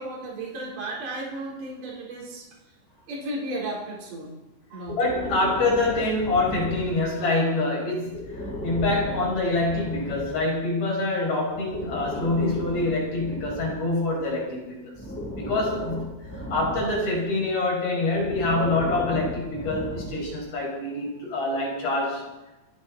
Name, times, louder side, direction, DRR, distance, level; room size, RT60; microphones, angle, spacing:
voice 1, 0.0-2.5 3.1-4.4 4.7-5.0, right 1 dB, 50° right, -3 dB, 5.5 m, -34 dB
Breathing, 4.9-7.3 8.0-10.4 11.5-14.3 14.9-17.2 18.1-20.4, equal, 5° left, 4.2 m, -35 dB
voice 2, 5.0-15.0 15.4-16.1 16.5-22.3, left 2 dB, 40° left, -3 dB, 6.8 m, -26 dB
28.5 x 10.5 x 4.3 m, 1.0 s
omnidirectional pair, 4.8 m